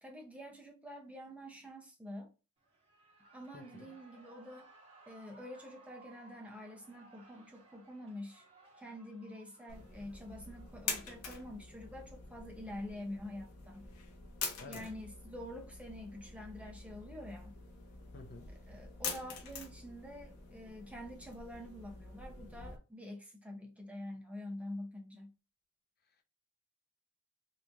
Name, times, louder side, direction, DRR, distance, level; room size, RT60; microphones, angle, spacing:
voice 1, 0.0-2.3 3.3-4.7 5.1-8.4 8.8-13.9 14.7-17.6 18.7-25.3, left 1 dB, 5° right, 0.7 m, -47 dB
Shout / Cheering, 2.6-11.5, right 3 dB, 25° right, 1.2 m, -62 dB
voice 2, 3.5-3.9 14.6-14.9 18.1-18.5, left 3 dB, 45° left, 0.6 m, -50 dB
sound 1, 9.7-22.8, left 5 dB, 85° left, 0.8 m, -46 dB
3.0 x 2.6 x 3.4 m
head